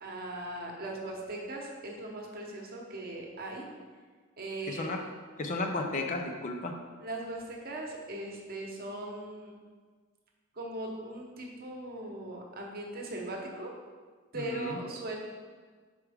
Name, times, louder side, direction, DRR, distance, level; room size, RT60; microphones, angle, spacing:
voice 1, 0.0-3.6 4.4-4.9 7.0-9.6 10.5-13.7 14.3-15.2, right 2 dB, 50° right, 0 dB, 0.9 m, -39 dB
voice 2, 4.6-5.1 5.4-6.8 14.3-14.8, left 2 dB, 40° left, 3 dB, 0.5 m, -34 dB
5.8 x 4.7 x 3.5 m, 1.5 s
head